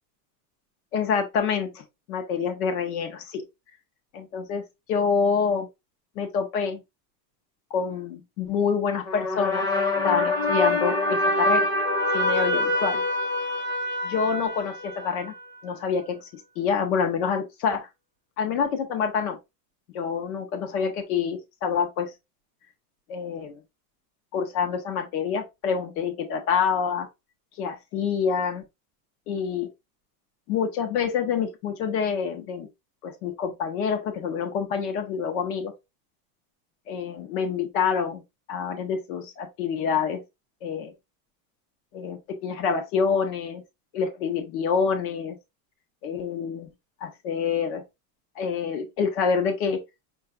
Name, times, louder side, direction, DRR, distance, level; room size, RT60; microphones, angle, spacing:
voice 1, 0.9-3.4 4.1-4.6 4.9-5.7 6.1-6.8 7.7-9.7 10.0-11.7 12.1-13.0 14.0-15.3 15.6-17.9 18.4-19.4 19.9-22.1 23.1-23.6 24.3-27.1 27.6-28.6 29.3-29.7 30.5-32.7 33.0-35.7 36.9-38.2 38.5-40.2 40.6-40.9 41.9-43.6 43.9-45.4 46.0-46.7 47.0-47.8 48.3-49.8, left 6 dB, 60° left, 1.5 m, -27 dB
sound 1, 9.1-15.4, left 1 dB, 30° left, 1.2 m, -25 dB
6.0 x 3.2 x 2.5 m
supercardioid pair, 180°, 49 cm